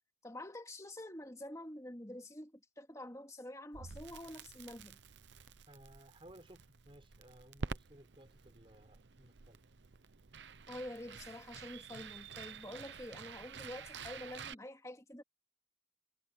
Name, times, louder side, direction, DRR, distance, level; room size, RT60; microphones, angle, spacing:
voice 1, 0.2-5.0 10.7-15.2, left 1 dB, 20° left, 2.4 m, -47 dB
Crackle, 3.7-14.5, right 5 dB, 80° right, 0.8 m, -49 dB
voice 2, 5.7-9.6, right 1 dB, 30° right, 5.3 m, -59 dB
head